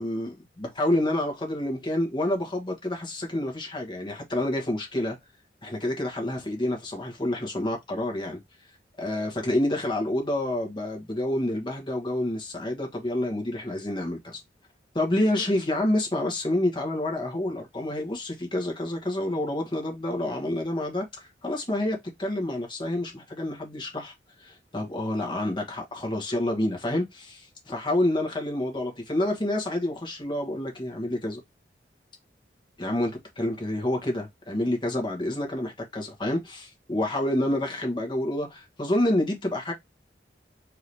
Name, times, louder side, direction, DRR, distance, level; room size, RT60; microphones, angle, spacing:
voice 1, 0.0-5.2 5.6-8.4 9.0-14.4 14.9-24.1 24.4-31.4 32.8-39.7, left 1 dB, 25° left, 1.3 m, -28 dB
4.6 x 2.8 x 3.4 m
head